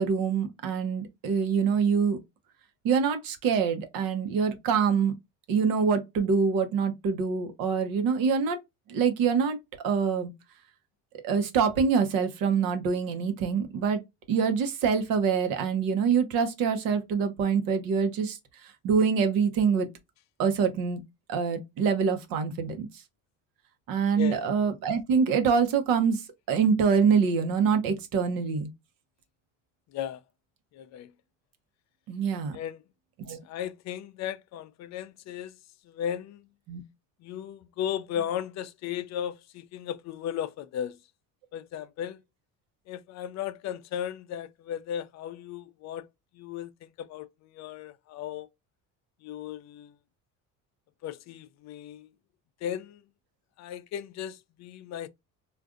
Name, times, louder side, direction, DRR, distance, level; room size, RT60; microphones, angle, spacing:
voice 1, 0.0-2.2 2.8-5.1 5.5-8.6 8.9-9.6 9.8-10.3 11.2-14.0 14.3-18.4 18.8-19.9 20.4-21.0 21.3-22.9 23.9-26.2 26.5-28.7 32.1-32.6 33.2-33.4 36.7-36.8, right 6 dB, 75° right, 0.9 m, -25 dB
voice 2, 24.1-24.5 29.9-30.2 30.7-31.1 32.5-32.8 33.4-35.6 35.8-36.4 37.2-41.0 41.5-42.2 42.9-46.1 46.3-48.5 49.2-50.0 51.0-52.1 52.6-53.0 53.6-55.1, left 10 dB, 50° left, 0.4 m, -36 dB
3.6 x 2.5 x 2.4 m
cardioid pair, 125°, 35 cm